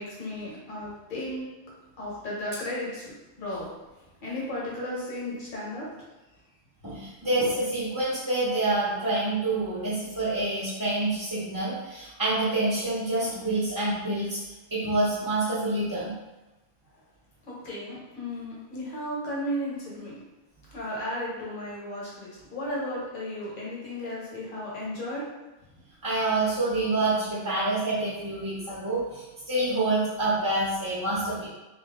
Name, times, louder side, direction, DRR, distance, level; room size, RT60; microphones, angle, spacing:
voice 1, 0.0-1.4 2.0-3.1 3.4-5.9 17.4-20.1 20.7-25.2, left 1 dB, 40° left, -5 dB, 1.2 m, -34 dB
voice 2, 6.8-14.4 14.7-16.1 26.0-31.5, right 2 dB, 20° right, -9 dB, 0.7 m, -27 dB
3.4 x 2.7 x 3.5 m, 1.1 s
omnidirectional pair, 1.3 m